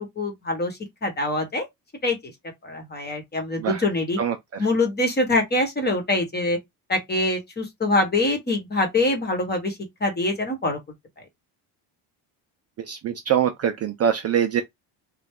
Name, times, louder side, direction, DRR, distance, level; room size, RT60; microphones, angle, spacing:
voice 1, 0.2-1.7 2.0-2.2 2.6-4.2 4.6-6.6 6.9-10.8, left 2 dB, 20° left, 1.2 m, -24 dB
voice 2, 4.2-4.6 12.9-14.6, right 9 dB, 35° right, 0.4 m, -24 dB
3.3 x 2.3 x 3.5 m
cardioid pair, 125°, 45 cm